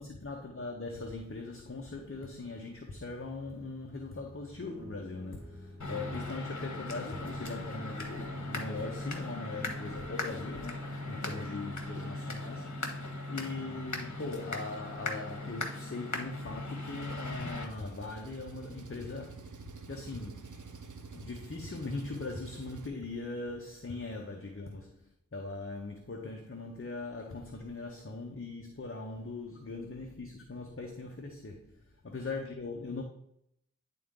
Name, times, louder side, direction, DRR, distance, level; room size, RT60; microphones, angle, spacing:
voice 1, 0.0-12.8 13.3-19.5 19.9-20.6 21.1-33.0, left 3 dB, 45° left, 0.9 m, -40 dB
sound 1, 4.6-8.2, right 1 dB, 5° left, 3.1 m, -54 dB
sound 2, 5.8-17.6, left 2 dB, 70° left, 1.2 m, -39 dB
Engine, 16.9-22.9, right 5 dB, 85° right, 0.6 m, -48 dB
10.0 x 3.9 x 3.7 m
wide cardioid pair, 45°, 30 cm